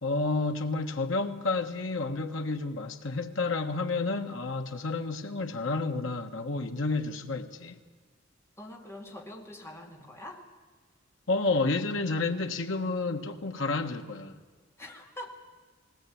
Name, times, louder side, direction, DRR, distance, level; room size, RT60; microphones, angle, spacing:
voice 1, 0.0-7.8 11.3-14.4, left 3 dB, 80° left, 1.5 m, -30 dB
voice 2, 8.6-10.4 14.8-15.3, left 1 dB, 15° left, 2.5 m, -44 dB
19.5 x 18.0 x 8.7 m
head